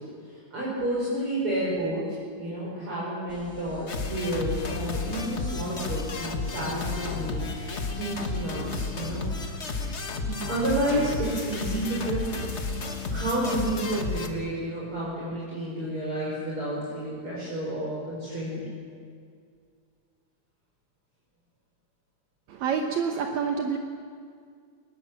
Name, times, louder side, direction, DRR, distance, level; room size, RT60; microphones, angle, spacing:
voice 1, 0.5-2.0 2.4-9.2 10.2-12.5 13.1-18.6, right 1 dB, 45° right, -7 dB, 5.9 m, -30 dB
sound 1, 3.3-8.4, left 3 dB, 75° left, 0.6 m, -45 dB
sound 2, 3.9-14.3, left 3 dB, 35° left, 1.1 m, -32 dB
voice 2, 22.5-23.8, right 6 dB, 70° right, 3 dB, 2.4 m, -27 dB
20.5 x 20.5 x 7.5 m, 2.2 s
omnidirectional pair, 3.4 m